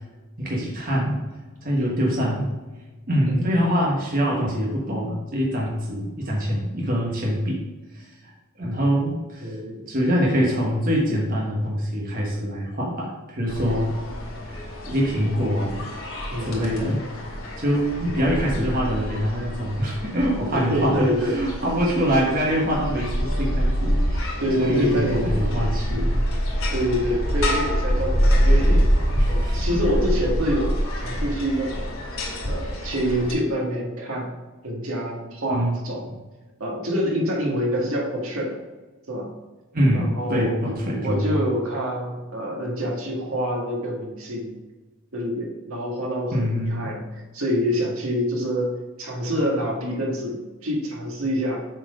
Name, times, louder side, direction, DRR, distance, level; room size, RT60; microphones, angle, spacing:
voice 1, 0.4-1.2 1.6-2.5 3.1-7.6 7.9-8.3 8.6-9.6 9.9-13.9 14.5-15.8 16.4-17.0 17.6-26.2 29.1-29.6 35.5-35.7 36.1-36.2 39.7-41.4 46.3-46.9, equal, 40° right, -3 dB, 1.2 m, -24 dB
voice 2, 9.4-9.8 16.3-16.7 20.5-21.4 24.4-25.3 26.7-28.9 29.3-31.9 32.5-34.3 34.6-36.0 36.6-38.6 39.1-39.3 39.9-40.5 41.0-44.6 45.1-47.0 47.3-51.6, equal, 75° right, -2 dB, 1.8 m, -26 dB
sound 1, 13.5-33.3, equal, 75° left, 2.3 m, -25 dB
7.6 x 4.5 x 4.9 m, 1.2 s
head